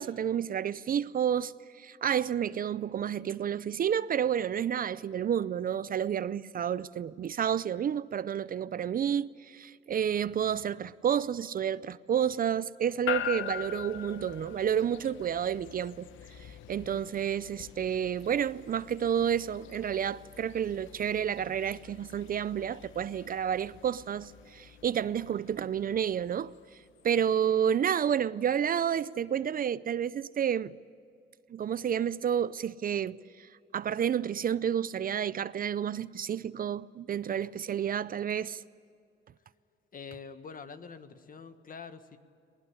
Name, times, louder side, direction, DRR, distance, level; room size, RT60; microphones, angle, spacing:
voice 1, 0.0-16.1 16.4-26.5 27.0-30.7 31.5-38.6, right 9 dB, 45° right, 0.5 m, -30 dB
sound 1, 13.1-27.3, left 10 dB, 80° left, 0.9 m, -43 dB
voice 2, 39.9-42.2, left 5 dB, 45° left, 1.5 m, -45 dB
20.5 x 20.0 x 9.9 m
cardioid pair, 90°, 20 cm